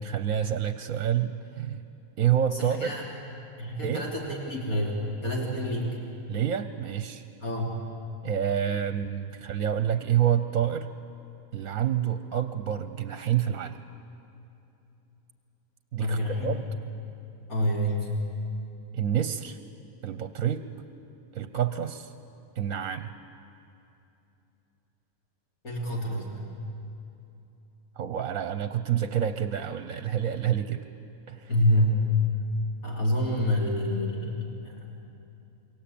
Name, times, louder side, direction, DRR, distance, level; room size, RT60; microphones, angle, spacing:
voice 1, 0.0-1.8 2.2-2.9 3.8-4.1 6.3-7.2 8.2-10.9 11.5-13.8 15.9-16.6 18.9-19.6 20.0-20.6 21.3-22.1 22.6-23.1 28.0-30.8 31.3-31.5, right 9 dB, 70° right, 11 dB, 1.2 m, -28 dB
voice 2, 2.5-3.0 3.6-6.0 7.4-7.8 16.0-16.5 17.5-18.1 25.6-26.5 31.5-32.0 32.8-34.8, equal, 80° left, -2 dB, 3.5 m, -27 dB
28.5 x 23.0 x 8.6 m, 2.8 s
omnidirectional pair, 1.5 m